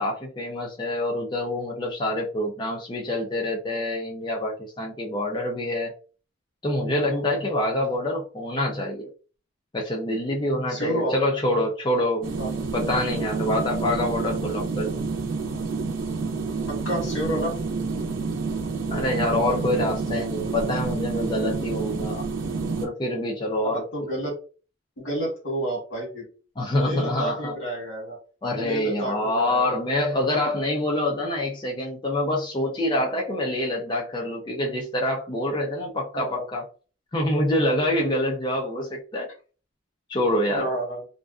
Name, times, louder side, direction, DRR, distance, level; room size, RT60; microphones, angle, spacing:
voice 1, 0.0-5.9 6.6-9.1 9.7-12.3 12.7-14.9 18.9-22.3 22.8-23.8 26.6-27.5 28.4-36.6 37.1-39.3 40.1-40.7, left 1 dB, 25° left, -1 dB, 0.4 m, -26 dB
voice 2, 6.9-7.4 10.7-11.1 12.4-12.5 16.7-17.6 23.6-24.4 25.0-26.3 26.8-28.2 28.6-29.8 36.1-36.5 38.0-38.2 40.6-41.0, right 1 dB, 80° left, -1 dB, 1.2 m, -30 dB
sound 1, 12.2-22.9, right 4 dB, 85° right, 0.5 m, -29 dB
2.5 x 2.2 x 2.3 m, 0.37 s
head